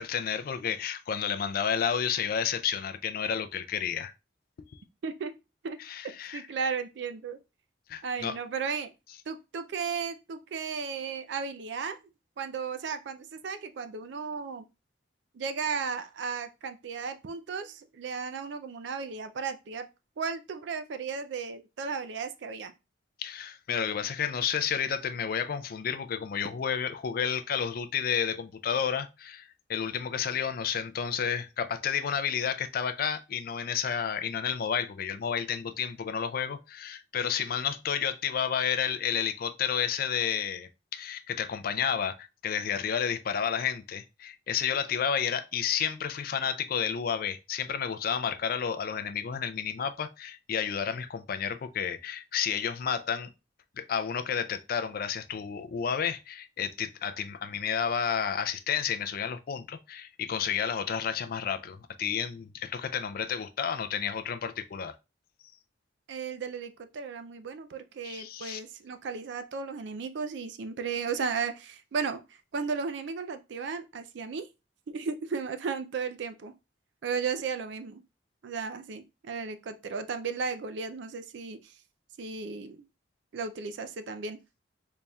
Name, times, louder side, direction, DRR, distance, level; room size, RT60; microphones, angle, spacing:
voice 1, 0.0-4.1 5.8-6.4 7.9-8.3 23.2-53.3 53.8-65.0 68.0-68.6, left 7 dB, 50° left, 0.4 m, -31 dB
voice 2, 5.0-5.3 5.6-5.8 6.0-7.4 8.0-8.9 9.3-12.0 12.4-14.6 15.3-19.9 20.2-22.7 66.1-72.2 72.5-74.5 74.9-76.5 77.0-78.0 78.4-81.7 82.2-82.9 83.3-84.4, right 5 dB, 65° right, 0.4 m, -35 dB
4.0 x 3.4 x 2.2 m
head